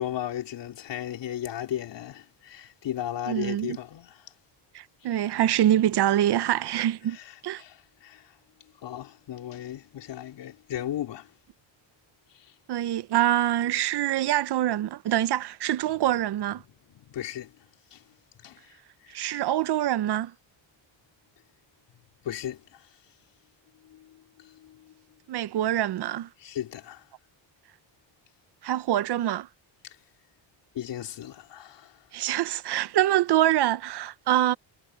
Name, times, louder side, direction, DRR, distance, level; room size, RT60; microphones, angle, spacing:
voice 1, 0.0-4.3 7.1-8.3 8.8-11.3 12.3-12.5 16.0-16.1 16.9-17.6 17.9-18.0 18.4-18.8 19.0-19.2 22.2-22.9 23.8-24.9 26.4-27.1 29.8-30.0 30.7-32.0, left 11 dB, 65° left, 4.0 m, -36 dB
voice 2, 3.3-3.8 4.7-7.2 7.4-7.6 12.7-16.6 19.1-20.3 25.3-26.3 28.6-29.5 32.1-34.6, right 12 dB, 60° right, 0.8 m, -25 dB
cardioid pair, 115°, 45 cm